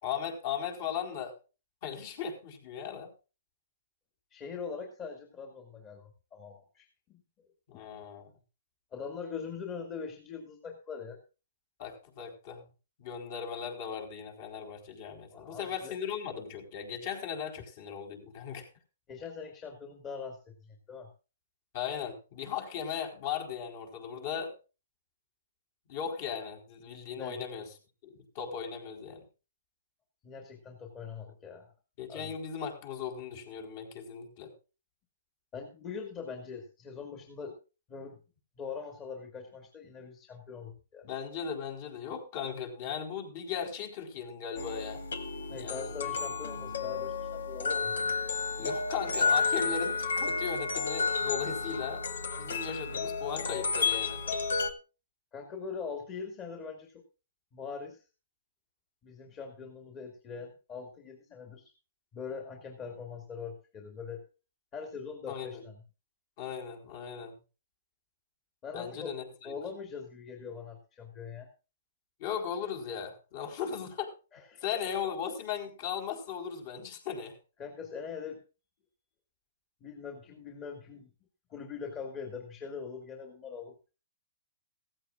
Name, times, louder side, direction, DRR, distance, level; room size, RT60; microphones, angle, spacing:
voice 1, 0.0-1.4 1.8-3.1 7.7-8.3 11.8-12.6 13.0-18.7 21.7-24.5 25.9-27.7 28.0-29.2 32.0-34.5 41.0-45.0 45.5-45.9 48.5-52.0 52.3-54.2 65.3-65.6 66.4-67.3 68.7-69.5 72.2-74.1 74.6-77.4, left 7 dB, 45° left, 2 dB, 4.5 m, -37 dB
voice 2, 4.3-7.2 7.7-7.8 8.9-11.2 15.3-15.9 19.1-21.1 27.2-27.4 30.2-31.7 32.1-32.3 35.5-37.6 37.9-38.2 38.6-41.1 45.5-48.1 55.3-57.0 57.5-58.0 59.0-61.7 62.1-64.2 64.7-65.8 68.6-69.1 69.4-71.5 74.3-74.6 77.6-78.4 79.8-81.1 81.5-83.8, left 5 dB, 25° left, 3 dB, 2.4 m, -42 dB
sound 1, 44.6-54.7, left 4 dB, 85° left, 1.7 m, -31 dB
16.0 x 15.0 x 2.5 m, 0.32 s
hypercardioid pair, 150°, 0 cm